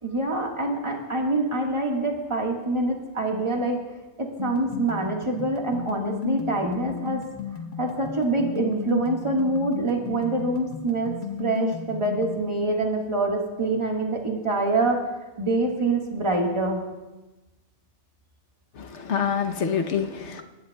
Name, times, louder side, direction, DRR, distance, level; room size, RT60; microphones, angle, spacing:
voice 1, 0.0-3.8 4.2-7.2 7.8-15.1 15.4-16.8, right 2 dB, 25° right, 0 dB, 1.6 m, -25 dB
sound 1, 4.4-12.4, left 6 dB, 85° left, 1.4 m, -34 dB
voice 2, 18.8-20.4, left 7 dB, 65° left, 5 dB, 1.2 m, -26 dB
22.0 x 11.5 x 2.3 m, 1.1 s
omnidirectional pair, 1.3 m